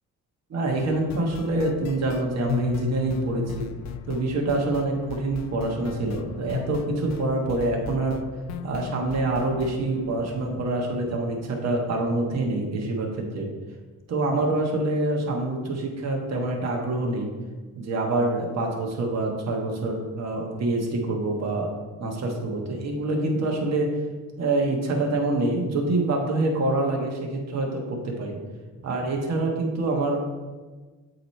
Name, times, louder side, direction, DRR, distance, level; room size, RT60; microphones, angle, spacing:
voice 1, 0.5-3.7 4.1-8.2 8.6-13.5 14.1-17.3 17.7-21.7 22.0-23.9 24.4-28.4 28.8-30.2, right 2 dB, 60° right, 0 dB, 1.3 m, -26 dB
sound 1, 0.8-11.7, left 9 dB, 65° left, 0.4 m, -37 dB
8.0 x 3.1 x 4.2 m, 1.3 s
cardioid pair, 90°, 30 cm